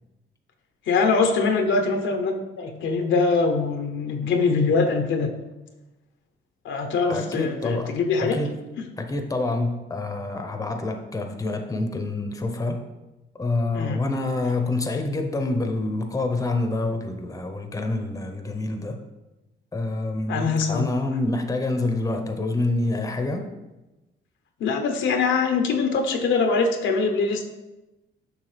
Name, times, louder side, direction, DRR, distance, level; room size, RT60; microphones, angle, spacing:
voice 1, 0.9-5.3 6.6-8.4 13.7-14.0 20.3-20.8 24.6-27.4, left 4 dB, 75° left, 5 dB, 0.9 m, -23 dB
voice 2, 7.1-8.6 9.0-12.9 13.4-19.0 19.7-23.5, left 2 dB, 15° left, 5 dB, 0.8 m, -27 dB
7.2 x 5.5 x 3.3 m, 1.0 s
cardioid pair, 90°, 20 cm